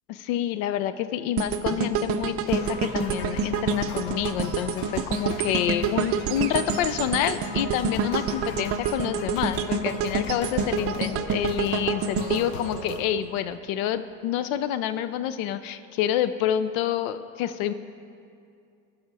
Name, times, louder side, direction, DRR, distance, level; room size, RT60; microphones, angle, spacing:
voice 1, 0.1-17.7, left 11 dB, 90° left, 12 dB, 0.5 m, -28 dB
sound 1, 1.4-13.5 14.0-14.1, right 6 dB, 40° right, 0.5 m, -28 dB
sound 2, 2.5-13.0, left 4 dB, 65° left, 1.0 m, -39 dB
15.0 x 6.4 x 4.7 m, 2.4 s
supercardioid pair, 125°, 39 cm